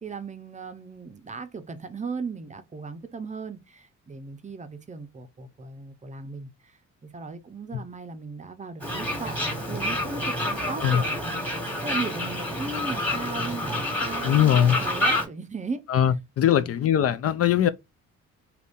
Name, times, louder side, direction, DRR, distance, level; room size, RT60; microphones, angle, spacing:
voice 1, 0.0-16.1 16.4-16.7, right 4 dB, 25° right, 0.6 m, -37 dB
Wind instrument woodwind instrument, 8.8-14.5, left 7 dB, 85° left, 1.3 m, -49 dB
Fowl, 8.8-15.2, left 1 dB, 5° left, 1.4 m, -28 dB
voice 2, 14.2-14.8 15.9-17.7, left 10 dB, 50° left, 0.4 m, -21 dB
2.9 x 2.6 x 3.5 m
cardioid pair, 90°, 30 cm